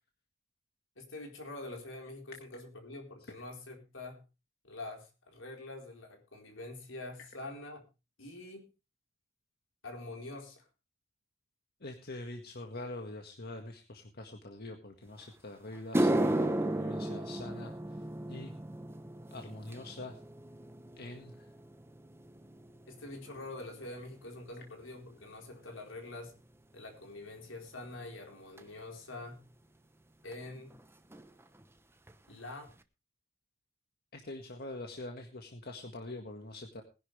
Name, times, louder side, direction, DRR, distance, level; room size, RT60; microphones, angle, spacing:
voice 1, 1.0-4.2 4.6-7.9 8.2-8.7 9.8-10.7 22.9-26.4 26.7-29.5 30.2-30.8 32.3-32.7, left 2 dB, 75° left, 2 dB, 4.3 m, -45 dB
voice 2, 11.8-17.7 18.3-18.5 19.3-20.1 21.0-21.3 34.1-36.8, left 2 dB, 55° left, 3 dB, 1.8 m, -44 dB
sound 1, 15.2-15.3 15.7-24.3 24.5-25.0 25.7-25.8 28.6-28.7 30.3-30.4 30.6-30.8 31.1-31.6 32.1-32.2 32.7-32.8, right 1 dB, 15° right, 0.9 m, -35 dB
20.0 x 11.0 x 3.4 m, 0.30 s
head